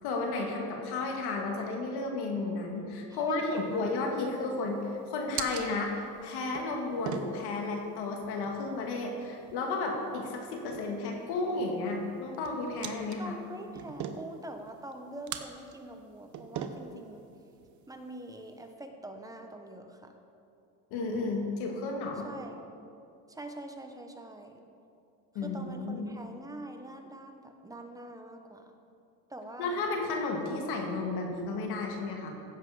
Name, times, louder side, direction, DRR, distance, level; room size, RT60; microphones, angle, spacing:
voice 1, 0.0-13.4 20.9-22.3 25.4-26.1 29.6-32.3, left 3 dB, 70° left, 1 dB, 2.0 m, -33 dB
voice 2, 3.1-3.9 13.2-17.3 17.9-20.1 22.2-22.6 23.3-24.6 25.4-28.7 29.3-29.8, right 1 dB, 10° right, 4 dB, 1.0 m, -44 dB
sound 1, 3.4-18.7, right 8 dB, 45° right, 0.9 m, -45 dB
15.5 x 7.5 x 4.9 m, 2.6 s
cardioid pair, 120°, 40 cm